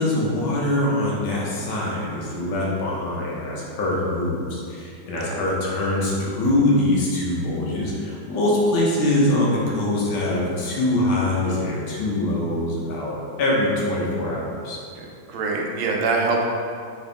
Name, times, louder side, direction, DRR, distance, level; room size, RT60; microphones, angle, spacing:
voice 1, 0.0-14.8, left 1 dB, 80° left, -4 dB, 1.7 m, -23 dB
voice 2, 15.0-16.4, right 3 dB, 80° right, 0 dB, 1.4 m, -24 dB
4.3 x 3.5 x 3.3 m, 2.3 s
omnidirectional pair, 2.2 m